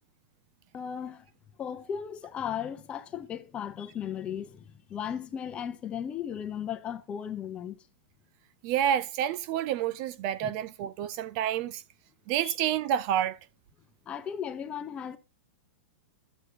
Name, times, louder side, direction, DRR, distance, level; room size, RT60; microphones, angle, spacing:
voice 1, 0.7-1.2 1.6-7.8 10.4-10.5 12.4-12.6 14.1-15.2, left 8 dB, 15° left, 0.7 m, -36 dB
voice 2, 8.6-11.8 12.3-13.4, right 10 dB, 30° right, 0.4 m, -29 dB
13.0 x 8.1 x 2.8 m
supercardioid pair, 165°, 7 cm